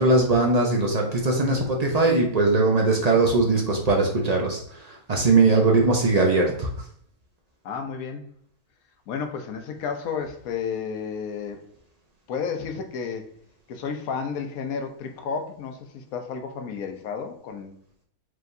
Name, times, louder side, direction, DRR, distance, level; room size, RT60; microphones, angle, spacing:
voice 1, 0.0-6.7, right 3 dB, 45° right, 0 dB, 0.5 m, -20 dB
voice 2, 7.6-8.3 9.1-11.6 12.3-13.3 13.7-17.7, left 6 dB, 70° left, 5 dB, 1.1 m, -32 dB
4.6 x 3.4 x 2.5 m, 0.63 s
omnidirectional pair, 1.6 m